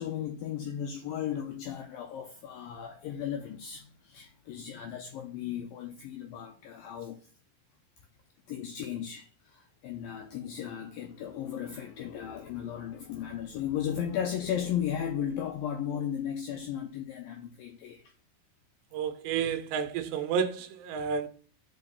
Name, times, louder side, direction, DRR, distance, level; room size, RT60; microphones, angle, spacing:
voice 1, 0.0-7.2 8.5-18.0, left 9 dB, 85° left, 2.0 m, -35 dB
voice 2, 18.9-21.3, right 7 dB, 85° right, 2.9 m, -31 dB
6.0 x 5.3 x 6.9 m
omnidirectional pair, 5.0 m